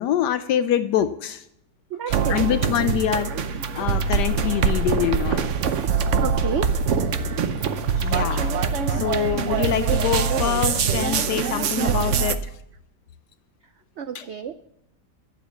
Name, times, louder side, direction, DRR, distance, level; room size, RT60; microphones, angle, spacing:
voice 1, 0.0-1.4 2.1-3.3 3.7-5.4 8.0-12.4 14.1-14.3, left 10 dB, 80° left, 11 dB, 1.2 m, -25 dB
voice 2, 1.9-2.5 6.2-6.7 14.0-14.5, right 8 dB, 80° right, 10 dB, 0.6 m, -29 dB
sound 1, 2.1-12.3, right 5 dB, 55° right, 0.9 m, -23 dB
12.0 x 7.5 x 7.1 m, 0.79 s
omnidirectional pair, 1.8 m